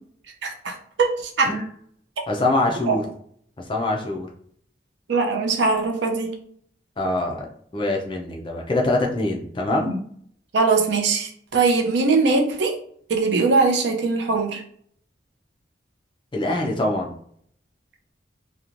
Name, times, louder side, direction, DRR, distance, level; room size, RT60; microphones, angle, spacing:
voice 1, 0.4-1.6 2.8-2.9 5.1-6.3 9.8-10.0 10.5-12.7 13.1-14.6, right 4 dB, 70° right, 3 dB, 0.5 m, -21 dB
voice 2, 2.3-3.1 3.7-4.3 7.0-7.5 7.7-9.9 16.3-17.1, left 2 dB, 25° left, 1 dB, 0.4 m, -24 dB
3.0 x 2.1 x 2.5 m, 0.63 s
head